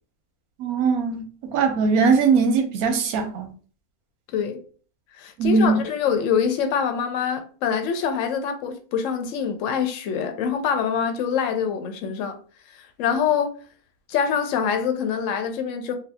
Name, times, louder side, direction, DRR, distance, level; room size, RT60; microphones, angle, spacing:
voice 1, 0.6-3.5 5.4-5.8, right 4 dB, 85° right, 1.1 m, -20 dB
voice 2, 5.2-12.4 12.8-13.5 14.1-16.0, left 7 dB, 70° left, 0.9 m, -25 dB
2.7 x 2.3 x 3.4 m
omnidirectional pair, 1.5 m